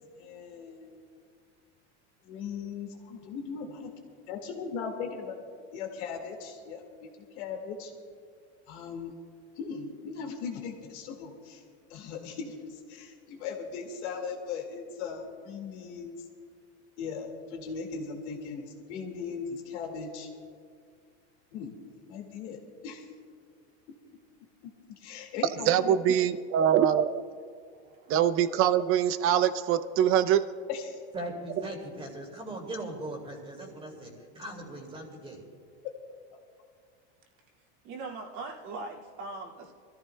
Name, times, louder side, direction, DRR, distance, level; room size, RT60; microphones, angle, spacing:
voice 1, 0.2-1.0 2.2-3.7 4.3-5.3 5.7-7.1 7.3-7.9 8.7-9.1 9.6-11.6 11.9-16.2 17.0-20.3 21.5-21.7 22.1-23.0 23.9-24.0 24.6-24.7 25.0-26.0 30.7-31.0, left 5 dB, 80° left, 2 dB, 2.1 m, -38 dB
voice 2, 25.7-27.2 28.1-30.4, right 10 dB, 40° right, 12 dB, 0.6 m, -23 dB
voice 3, 31.1-35.4, right 1 dB, 15° right, 1 dB, 2.4 m, -39 dB
voice 4, 37.8-39.7, right 3 dB, 55° right, 0 dB, 2.3 m, -40 dB
25.0 x 14.5 x 2.3 m, 2.1 s
supercardioid pair, 135°, 35 cm